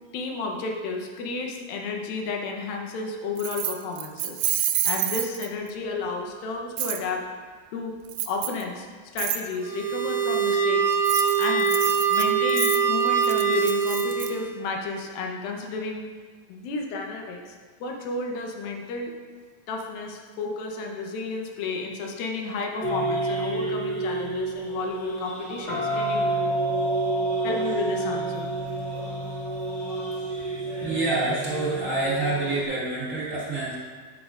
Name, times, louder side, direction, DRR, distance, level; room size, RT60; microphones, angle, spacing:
voice 1, 0.1-4.4 4.8-7.3 7.7-8.0 8.3-8.9 9.1-11.0 11.4-11.7 12.1-16.0 16.5-19.1 19.7-26.3 27.4-28.5, left 3 dB, 80° left, 2 dB, 2.7 m, -32 dB
Keys jangling, 3.4-5.7 6.8-7.0 8.1-8.6 9.2-9.4 10.9-14.3, right 12 dB, 90° right, 2.4 m, -28 dB
sound 1, 9.6-14.5, right 6 dB, 65° right, 2.0 m, -23 dB
sound 2, 22.8-32.6, right 2 dB, 30° left, 1.3 m, -29 dB
voice 2, 30.8-33.8, right 2 dB, 30° right, -9 dB, 1.6 m, -27 dB
10.5 x 8.6 x 2.5 m, 1.5 s
omnidirectional pair, 4.2 m